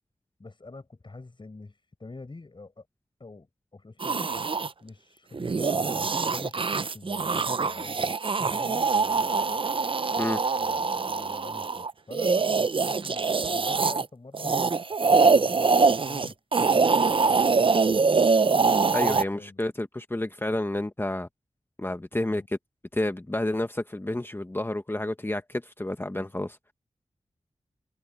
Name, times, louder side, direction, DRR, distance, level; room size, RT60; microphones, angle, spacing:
voice 1, 0.4-2.9 3.2-4.3 4.8-9.6 10.6-14.7 15.1-18.3 19.1-19.6 22.3-22.5, left 3 dB, 45° left, 7.4 m, -46 dB
sound 1, 4.0-4.7 5.3-14.1 14.3-19.2, right 4 dB, 50° right, 0.6 m, -24 dB
voice 2, 18.9-21.3 21.8-22.6 22.9-26.6, left 1 dB, 20° left, 1.1 m, -30 dB
wide cardioid pair, 60°, 11 cm